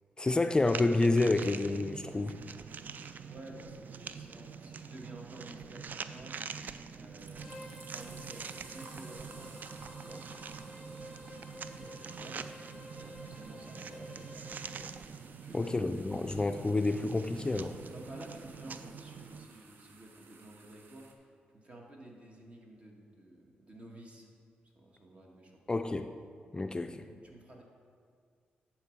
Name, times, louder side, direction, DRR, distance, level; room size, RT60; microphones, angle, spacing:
voice 1, 0.2-2.4 15.5-17.8 25.7-26.1 26.5-27.1, left 2 dB, 25° left, 8 dB, 0.4 m, -29 dB
sound 1, 0.7-19.5, right 6 dB, 55° right, 0.3 m, -45 dB
voice 2, 3.3-6.3 7.0-7.5 7.9-10.2 11.7-12.5 12.8-14.9 15.4-15.7 17.9-21.1 21.5-24.3 24.7-25.5 27.0-27.6, right 1 dB, 35° right, -1 dB, 1.6 m, -52 dB
sound 2, 6.9-21.1, right 4 dB, 70° right, 0.8 m, -56 dB
Bowed string instrument, 7.3-15.0, left 1 dB, 5° right, 1.3 m, -51 dB
10.5 x 4.6 x 4.6 m, 2.2 s
cardioid pair, 65°, 4 cm